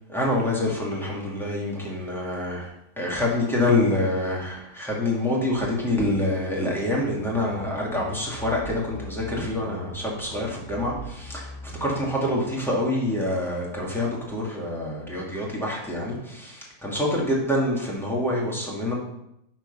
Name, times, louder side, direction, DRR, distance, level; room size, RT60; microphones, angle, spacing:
voice 1, 0.1-2.7 3.0-11.5 11.8-18.9, left 1 dB, ahead, -5 dB, 2.3 m, -26 dB
sound 1, 7.0-12.1, right 2 dB, 85° left, 4.2 m, -40 dB
9.1 x 4.7 x 5.7 m, 0.79 s
omnidirectional pair, 1.7 m